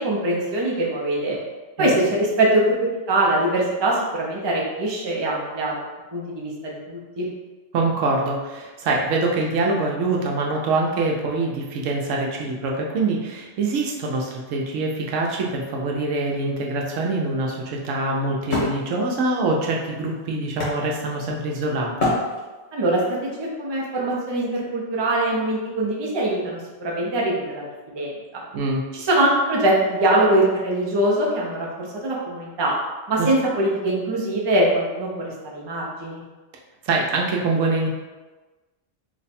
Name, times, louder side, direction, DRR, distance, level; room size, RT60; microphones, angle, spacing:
voice 1, 0.0-1.4 1.8-5.7 6.1-7.3 22.7-27.6 27.9-28.4 28.9-32.7 33.1-36.2, right 1 dB, 35° right, -3 dB, 0.4 m, -22 dB
voice 2, 7.7-22.1 28.5-28.8 33.2-33.3 36.8-37.9, right 3 dB, 85° right, 0 dB, 1.0 m, -24 dB
Wood, 16.8-21.5 22.0-22.9, left 2 dB, 85° left, 1.5 m, -28 dB
3.1 x 2.2 x 4.1 m, 1.2 s
omnidirectional pair, 1.3 m